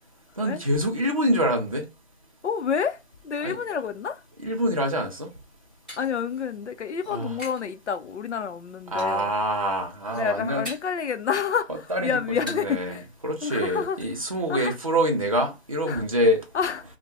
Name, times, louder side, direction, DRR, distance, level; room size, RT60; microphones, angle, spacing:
voice 1, 0.4-1.9 3.4-3.6 4.4-5.3 7.1-7.4 8.9-10.7 11.9-12.1 12.4-16.4, equal, 30° right, 0.5 m, -25 dB
voice 2, 2.4-3.0 3.2-4.2 6.0-9.3 10.1-13.0 13.4-14.0 14.5-14.7 15.9-16.0 16.5-16.8, left 7 dB, 85° left, 0.6 m, -28 dB
sound 1, 5.3-7.7 8.0-8.5 9.0-9.5 9.8-11.1 11.4-12.8 13.1-13.2 13.5-14.0, left 1 dB, 5° left, 0.7 m, -43 dB
2.6 x 2.1 x 3.3 m
figure-of-eight pair, 170°, 34 cm